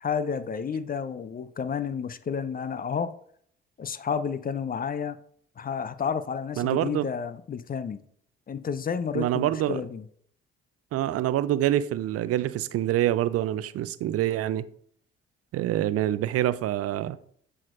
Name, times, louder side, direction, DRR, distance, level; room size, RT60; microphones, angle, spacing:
voice 1, 0.0-3.1 3.8-5.2 5.6-8.0 8.5-10.1, left 6 dB, 30° left, 0.5 m, -31 dB
voice 2, 6.6-7.1 9.1-9.8 10.9-14.7 15.5-17.2, right 13 dB, 55° right, 0.5 m, -26 dB
7.4 x 6.4 x 2.5 m
hypercardioid pair, 45°, 29 cm